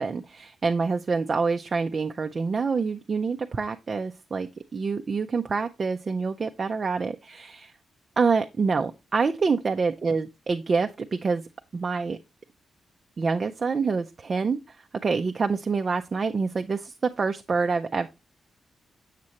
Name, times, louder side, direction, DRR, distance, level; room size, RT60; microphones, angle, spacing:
voice 1, 0.0-7.7 8.2-11.4 11.7-12.2 13.2-14.6 15.0-18.1, right 4 dB, 35° right, 5 dB, 0.4 m, -26 dB
7.3 x 6.3 x 2.8 m, 0.24 s
wide cardioid pair, 145°, 0 cm